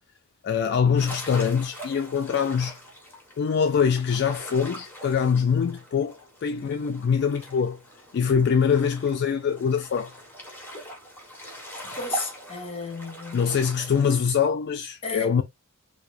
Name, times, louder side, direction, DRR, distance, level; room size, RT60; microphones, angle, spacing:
voice 1, 0.4-2.8 3.4-7.8 8.1-10.1 13.3-15.4, left 6 dB, 50° left, 0.3 m, -24 dB
sound 1, 1.0-14.2, right 1 dB, 10° left, 1.3 m, -42 dB
voice 2, 12.0-13.6 15.0-15.4, left 3 dB, 25° left, 1.2 m, -34 dB
4.6 x 2.0 x 2.5 m
head